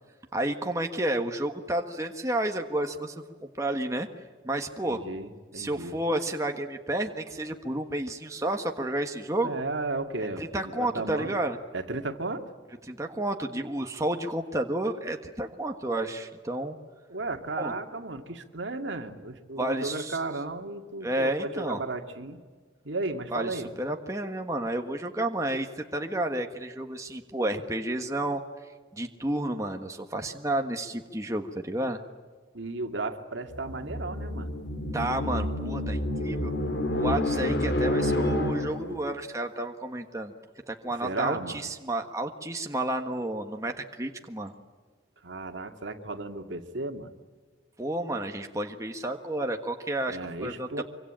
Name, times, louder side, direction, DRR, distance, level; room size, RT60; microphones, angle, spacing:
voice 1, 0.3-4.1 4.4-5.0 5.5-9.6 10.4-11.6 12.8-16.8 17.6-17.7 19.6-20.2 21.0-21.8 23.3-32.0 34.9-36.5 36.9-40.3 40.7-44.6 47.8-50.8, right 1 dB, 15° right, 4 dB, 1.5 m, -31 dB
voice 2, 4.9-6.0 9.4-10.4 10.8-11.3 11.7-12.5 17.1-22.4 22.8-23.7 32.5-34.5 41.0-41.7 45.2-47.1 50.1-50.8, right 2 dB, 75° right, 5 dB, 2.2 m, -34 dB
sound 1, 33.5-39.0, left 1 dB, 65° left, 2.8 m, -29 dB
25.5 x 24.5 x 8.9 m, 1.4 s
head